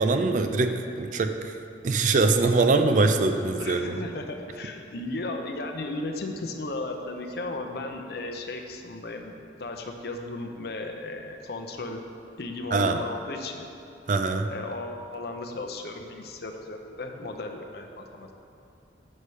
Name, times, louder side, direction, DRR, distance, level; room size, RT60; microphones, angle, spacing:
voice 1, 0.0-1.5 1.8-4.0 12.7-13.0 14.1-14.5, right 3 dB, 45° right, 7 dB, 0.4 m, -23 dB
voice 2, 3.6-12.0 12.4-13.6 14.5-18.3, left 2 dB, 60° left, 4 dB, 0.6 m, -35 dB
6.5 x 4.8 x 5.5 m, 2.7 s
head